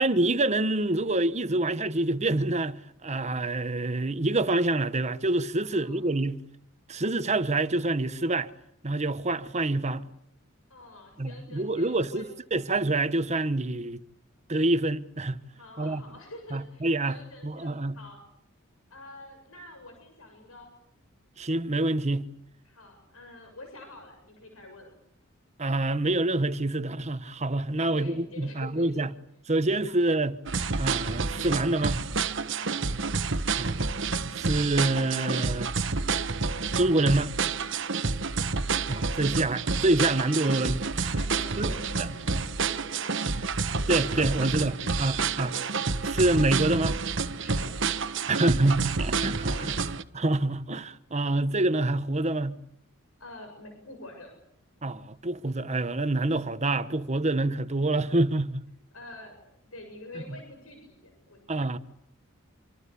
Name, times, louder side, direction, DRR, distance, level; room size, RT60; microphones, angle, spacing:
voice 1, 0.0-6.4 6.9-8.5 8.8-10.0 11.2-14.0 14.5-15.4 15.8-16.0 16.5-17.2 17.4-18.0 21.4-22.3 25.6-29.1 29.5-30.4 30.8-32.0 33.6-33.8 34.3-35.7 36.7-37.3 38.9-41.1 41.6-42.1 43.9-45.5 46.0-47.0 48.3-49.4 50.1-52.6 54.8-58.6 61.5-61.8, right 2 dB, 35° right, 1.1 m, -26 dB
voice 2, 5.6-6.1 10.7-12.3 15.5-18.2 18.9-20.7 22.6-24.9 27.8-29.0 29.9-30.0 32.4-32.7 37.8-38.2 41.2-43.4 43.8-45.7 47.4-47.7 49.4-49.8 53.2-54.3 58.9-61.5, left 2 dB, 90° left, 7.3 m, -47 dB
sound 1, 30.5-50.0, right 4 dB, 60° right, 1.3 m, -29 dB
26.5 x 25.5 x 8.4 m
head